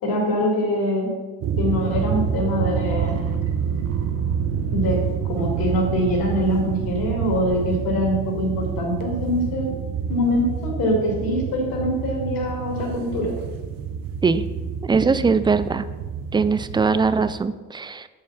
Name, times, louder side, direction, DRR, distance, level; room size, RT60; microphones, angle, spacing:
voice 1, 0.0-1.1 1.6-3.2 4.7-5.0 5.3-9.7 10.1-13.3, left 1 dB, 75° left, -1 dB, 2.6 m, -23 dB
sound 1, 1.4-17.4, right 8 dB, 70° right, 0.8 m, -28 dB
sound 2, 2.9-8.9, right 5 dB, 40° right, 1.0 m, -34 dB
voice 2, 14.8-15.8 16.3-18.1, right 4 dB, 15° right, 13 dB, 0.3 m, -21 dB
7.2 x 4.8 x 5.8 m, 1.3 s
cardioid pair, 80°, 36 cm